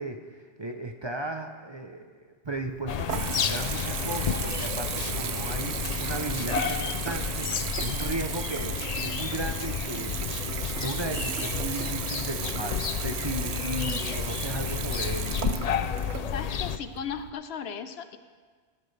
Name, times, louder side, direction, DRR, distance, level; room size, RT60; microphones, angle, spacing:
voice 1, 0.0-10.3 10.8-15.4, right 2 dB, 30° right, 4 dB, 0.7 m, -36 dB
Water tap faucet / Bathtub (filling or washing) / Trickle dribble, 2.4-17.3, right 9 dB, 80° right, 0.9 m, -35 dB
sound 1, 2.9-16.8, left 7 dB, 50° left, 0.5 m, -31 dB
voice 2, 16.3-18.2, left 7 dB, 70° left, 10 dB, 0.9 m, -36 dB
17.0 x 13.5 x 3.3 m, 1.6 s
omnidirectional pair, 1.1 m